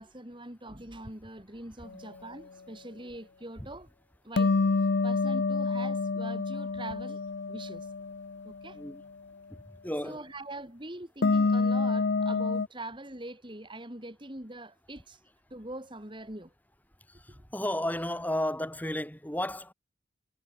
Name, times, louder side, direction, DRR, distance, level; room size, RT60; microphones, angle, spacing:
voice 1, 0.0-3.9 4.2-4.5 5.0-7.9 8.4-8.8 10.0-15.2 15.5-16.5 17.4-17.5, right 1 dB, 25° right, 3.5 m, -43 dB
sound 1, 4.4-8.5 11.2-12.7, left 3 dB, 60° left, 0.6 m, -27 dB
voice 2, 9.5-10.2 17.1-19.7, left 1 dB, 10° left, 4.1 m, -33 dB
head